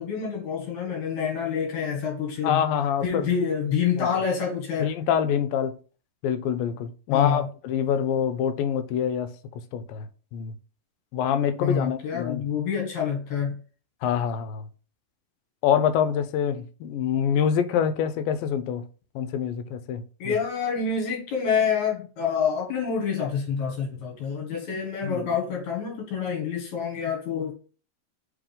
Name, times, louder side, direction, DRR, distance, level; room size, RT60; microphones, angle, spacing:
voice 1, 0.0-2.6 3.0-4.9 7.1-7.5 11.6-13.6 20.2-27.5, left 6 dB, 60° left, 2.7 m, -27 dB
voice 2, 2.4-3.3 4.0-4.1 4.8-5.8 6.2-9.3 9.7-10.1 10.3-10.5 11.1-12.5 14.0-14.6 15.6-18.8 19.2-20.4 25.0-25.3, left 8 dB, 85° left, 2.4 m, -25 dB
5.3 x 3.7 x 5.0 m
omnidirectional pair, 4.0 m